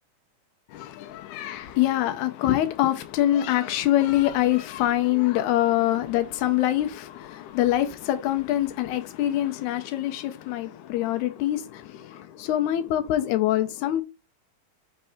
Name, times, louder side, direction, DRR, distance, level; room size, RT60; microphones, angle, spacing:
voice 1, 0.7-14.0, left 13 dB, 85° left, 1.7 m, -25 dB
5.3 x 3.3 x 5.6 m
omnidirectional pair, 4.1 m